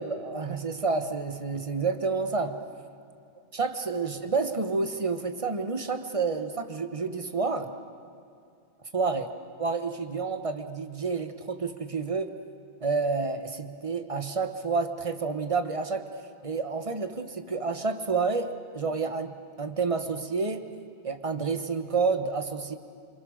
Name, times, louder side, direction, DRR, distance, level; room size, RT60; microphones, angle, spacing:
voice 1, 0.0-2.6 3.5-7.7 8.9-9.3 9.6-12.3 12.8-16.1 16.4-20.7 21.0-22.8, right 4 dB, 20° right, 8 dB, 0.9 m, -29 dB
27.0 x 26.0 x 6.6 m, 2.6 s
omnidirectional pair, 2.3 m